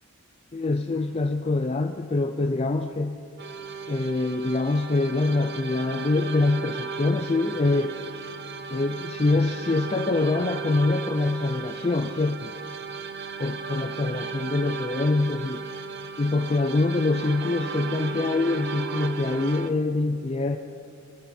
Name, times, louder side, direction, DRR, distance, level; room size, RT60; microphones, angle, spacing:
voice 1, 0.5-3.2 3.9-8.2 8.7-12.5 13.4-15.6 16.2-20.6, left 2 dB, 25° left, 7 dB, 0.4 m, -25 dB
sound 1, 3.4-19.7, right 5 dB, 50° right, 0.6 m, -35 dB
22.0 x 13.5 x 4.3 m, 2.7 s
head